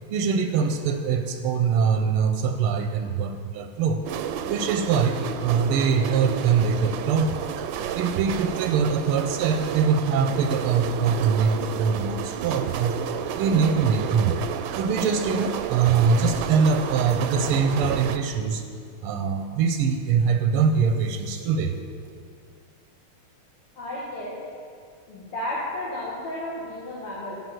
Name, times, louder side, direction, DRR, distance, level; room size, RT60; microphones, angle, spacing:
voice 1, 0.1-4.0 4.4-7.4 7.9-13.0 13.4-14.4 14.8-18.6 19.0-21.8, right 6 dB, 90° right, 6 dB, 1.6 m, -23 dB
sound 1, 4.1-18.2, right 9 dB, 75° right, 1.3 m, -31 dB
voice 2, 23.8-24.4 25.1-27.4, left 1 dB, 80° left, -7 dB, 2.9 m, -33 dB
16.5 x 5.7 x 7.7 m, 2.2 s
omnidirectional pair, 2.4 m